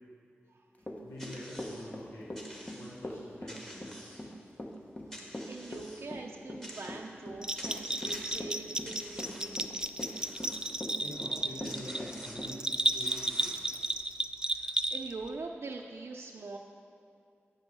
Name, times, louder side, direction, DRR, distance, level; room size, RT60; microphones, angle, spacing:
Run / Walk footsteps, 0.8-12.5, left 1 dB, 30° left, 1.0 m, -41 dB
voice 1, 1.0-2.3 2.8-4.2 11.0-12.7 12.9-13.8, left 1 dB, 80° left, -6 dB, 1.4 m, -46 dB
sound 1, 1.2-1.9 2.3-3.1 3.5-4.5 5.1-6.1 6.6-7.3 7.6-8.4 8.8-9.6 10.0-10.7 11.3-11.4 11.6-12.5 12.9-13.8, equal, 10° left, 1.6 m, -48 dB
voice 2, 5.5-9.7 14.4-16.6, right 3 dB, 65° right, -1 dB, 0.5 m, -43 dB
Bell, 7.4-15.3, right 1 dB, 15° right, 0.4 m, -33 dB
8.9 x 5.3 x 6.3 m, 2.5 s
cardioid pair, 50°, 5 cm